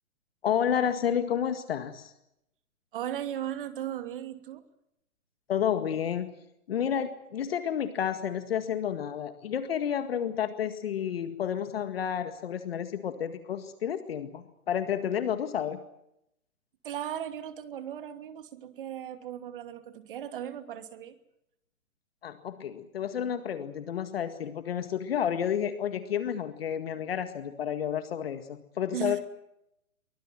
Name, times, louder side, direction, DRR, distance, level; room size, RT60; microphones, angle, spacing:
voice 1, 0.4-2.1 5.5-6.3 6.7-15.8 22.2-29.2, left 9 dB, 45° left, 9 dB, 1.9 m, -30 dB
voice 2, 2.9-4.7 16.8-21.2 28.9-29.2, right 10 dB, 40° right, 9 dB, 2.8 m, -37 dB
23.5 x 21.0 x 7.6 m, 0.80 s
hypercardioid pair, 160°, 42 cm